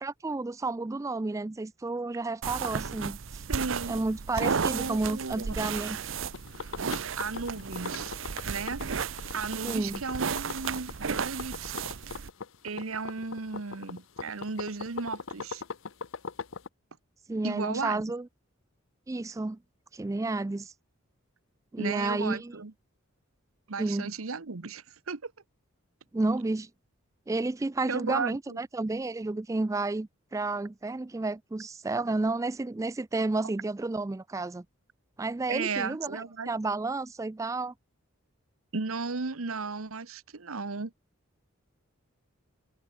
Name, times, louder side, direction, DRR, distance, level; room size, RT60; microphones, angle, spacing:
voice 1, 0.0-3.2 3.9-6.0 9.6-10.0 17.3-18.3 19.1-19.6 19.9-20.7 21.7-22.5 23.8-24.1 26.1-26.7 27.3-34.6 35.2-37.7, right 2 dB, 15° right, 0.3 m, -31 dB
sound 1, 2.4-12.3, right 6 dB, 65° right, 0.7 m, -34 dB
voice 2, 3.5-4.0 4.4-5.6 7.2-8.1 8.4-8.8 9.3-11.9 12.6-15.6 17.4-18.0 21.8-22.7 23.7-25.3 27.9-28.6 35.5-36.5 38.7-40.9, right 4 dB, 85° right, 1.1 m, -35 dB
sound 2, 6.3-16.7, left 5 dB, 65° left, 0.7 m, -40 dB
head